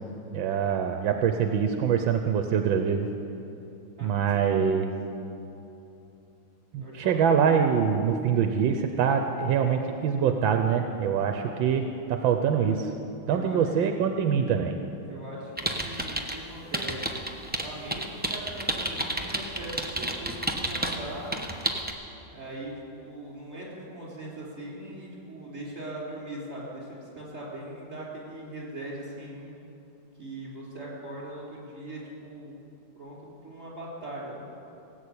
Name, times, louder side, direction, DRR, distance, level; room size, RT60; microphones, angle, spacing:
voice 1, 0.3-3.1 4.0-4.9 6.7-12.9 13.3-14.8, right 7 dB, 85° right, 5 dB, 1.5 m, -24 dB
voice 2, 4.0-4.5 6.8-7.2 13.2-13.6 15.0-21.4 22.3-29.5 30.2-32.6 32.9-34.4, right 1 dB, 40° right, -4 dB, 4.5 m, -40 dB
sound 1, 15.6-16.4 16.7-21.0 21.3-21.9, right 1 dB, 10° right, 0.4 m, -30 dB
18.5 x 8.2 x 8.6 m, 2.8 s
omnidirectional pair, 2.1 m